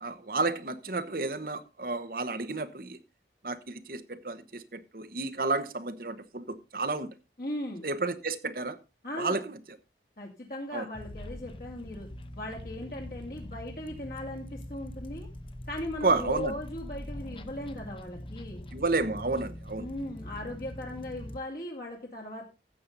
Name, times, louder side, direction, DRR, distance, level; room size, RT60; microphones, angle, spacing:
voice 1, 0.0-3.0 3.4-7.1 7.8-8.8 9.2-9.8 10.7-10.9 16.0-16.5 18.7-19.9, right 3 dB, 50° right, 1.1 m, -31 dB
voice 2, 7.4-7.9 9.0-9.4 10.2-12.1 12.3-15.3 15.7-18.6 19.8-22.5, left 1 dB, 50° left, 2.6 m, -38 dB
sound 1, 10.9-21.4, left 1 dB, 30° left, 0.9 m, -43 dB
14.0 x 8.4 x 4.0 m
head